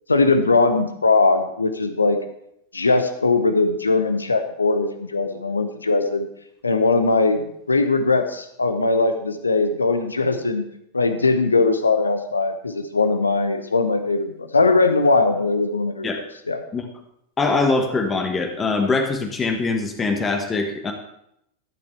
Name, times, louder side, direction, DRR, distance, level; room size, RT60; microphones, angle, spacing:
voice 1, 0.1-2.2 2.7-6.3 6.6-10.6 10.9-16.1 16.5-16.6, left 3 dB, 80° left, 9 dB, 1.0 m, -20 dB
voice 2, 17.4-20.9, left 3 dB, 20° left, 4 dB, 1.3 m, -22 dB
13.5 x 8.5 x 3.4 m, 0.77 s
figure-of-eight pair, 90°, 0 cm